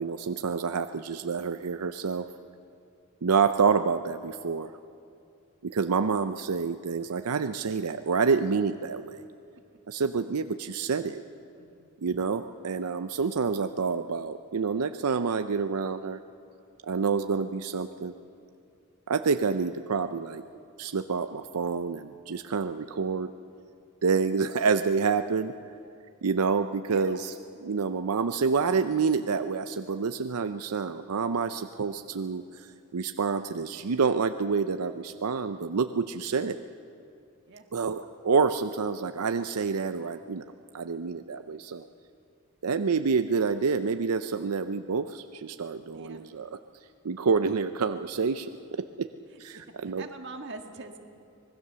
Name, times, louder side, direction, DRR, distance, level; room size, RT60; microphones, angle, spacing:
voice 1, 0.0-2.3 3.2-4.7 5.6-9.2 9.9-11.2 12.0-16.2 16.8-18.1 19.1-20.4 20.8-23.3 24.0-25.5 26.2-27.3 27.6-36.6 37.7-40.4 40.7-41.8 42.6-46.6 47.0-49.1 49.4-50.0, right 5 dB, 90° right, 9 dB, 0.6 m, -28 dB
voice 2, 11.6-11.9 26.9-27.2 37.5-37.6 45.9-46.2 49.5-51.0, right 3 dB, 55° right, 4 dB, 1.7 m, -43 dB
25.0 x 19.5 x 6.8 m, 2.5 s
head